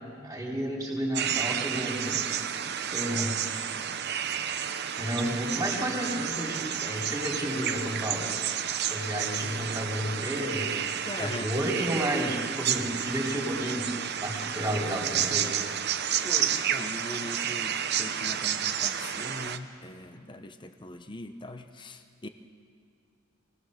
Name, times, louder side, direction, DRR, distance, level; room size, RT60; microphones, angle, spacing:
voice 1, 0.2-2.2 2.6-3.4 5.0-8.2 8.8-10.8 11.2-13.9 14.2-15.5, equal, 15° right, -2 dB, 3.4 m, -31 dB
sound 1, 1.1-19.6, right 9 dB, 55° right, 0.8 m, -31 dB
voice 2, 11.1-11.5 11.8-11.9 16.2-22.3, left 2 dB, 25° left, 8 dB, 0.7 m, -41 dB
24.0 x 18.0 x 6.5 m, 2.4 s
head